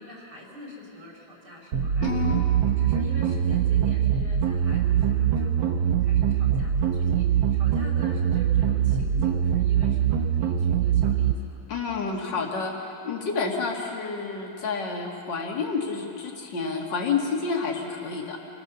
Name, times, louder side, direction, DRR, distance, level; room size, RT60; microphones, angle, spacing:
voice 1, 0.0-11.6, left 1 dB, 55° right, -2 dB, 5.1 m, -45 dB
sound 1, 1.7-11.3, right 9 dB, 75° right, 1.7 m, -23 dB
voice 2, 2.0-2.4 11.7-18.4, left 5 dB, 60° left, 0 dB, 2.8 m, -29 dB
27.0 x 16.5 x 7.0 m, 2.7 s
omnidirectional pair, 2.2 m